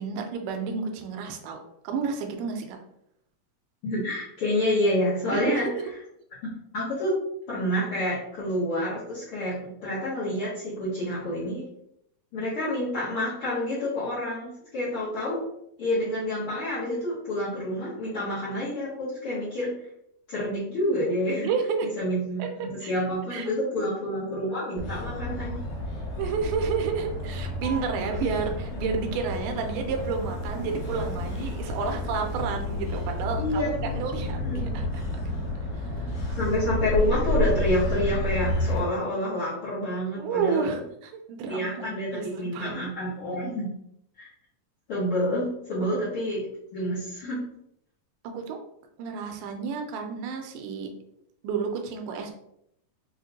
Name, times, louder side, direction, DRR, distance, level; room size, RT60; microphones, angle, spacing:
voice 1, 0.0-1.6 1.8-2.8 5.3-5.8 21.4-21.9 22.4-22.5 22.8-22.9 23.3-23.5 23.8-23.9 26.2-35.4 35.8-35.9 36.2-36.4 40.2-41.7 42.1-42.9 48.3-48.6 49.0-50.9 51.4-52.3, right 5 dB, 80° right, 4 dB, 2.0 m, -31 dB
voice 2, 3.8-5.7 6.4-7.2 7.5-11.6 12.3-15.4 15.8-19.7 20.3-21.5 22.0-25.5 33.4-33.8 34.3-34.9 36.4-40.8 41.5-43.7 44.2-44.3 44.9-46.4 46.7-47.4, left 1 dB, 80° left, -10 dB, 1.2 m, -28 dB
Motor vehicle (road), 24.8-38.8, left 1 dB, 60° left, 1.9 m, -30 dB
6.2 x 2.2 x 2.8 m, 0.75 s
omnidirectional pair, 4.1 m